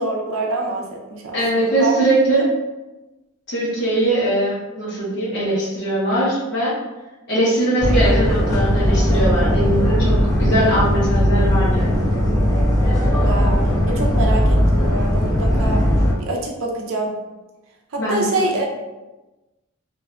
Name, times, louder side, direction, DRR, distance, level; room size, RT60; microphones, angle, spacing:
voice 1, 0.0-1.9 13.1-15.8 16.2-17.1 17.9-18.7, right 2 dB, 75° right, 0 dB, 0.5 m, -25 dB
voice 2, 1.3-2.5 3.5-6.7 7.3-10.1 10.4-12.0 18.0-18.5, right 1 dB, 60° left, -7 dB, 1.0 m, -21 dB
sound 1, 7.8-16.1, equal, 15° left, 0.5 m, -18 dB
2.5 x 2.2 x 2.3 m, 1.1 s
head